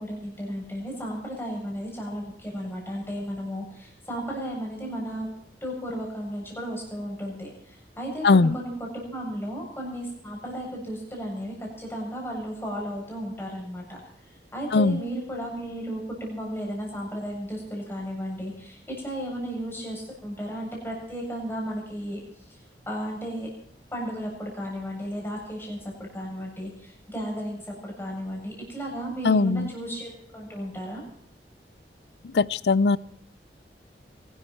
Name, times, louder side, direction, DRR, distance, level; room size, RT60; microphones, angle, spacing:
voice 1, 0.0-5.3 5.6-22.2 22.9-23.5 23.9-31.0, equal, 15° left, -1 dB, 7.7 m, -34 dB
voice 2, 8.2-8.6 14.7-15.0 29.2-29.7 32.3-33.0, left 3 dB, 70° left, 20 dB, 0.5 m, -20 dB
23.5 x 13.0 x 4.5 m, 0.68 s
head